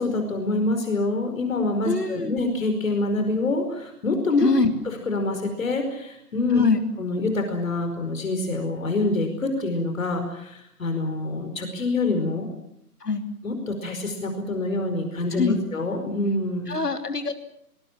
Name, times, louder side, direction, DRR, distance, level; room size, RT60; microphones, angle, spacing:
voice 1, 0.0-4.5 4.8-6.6 7.0-12.5 13.4-16.7, left 2 dB, 55° left, 6 dB, 5.0 m, -26 dB
voice 2, 1.9-2.4 4.4-4.7 6.5-6.8 13.0-13.2 15.4-15.6 16.7-17.3, left 3 dB, 80° left, 6 dB, 3.5 m, -23 dB
26.0 x 20.5 x 7.4 m, 0.77 s
figure-of-eight pair, 140°, 47 cm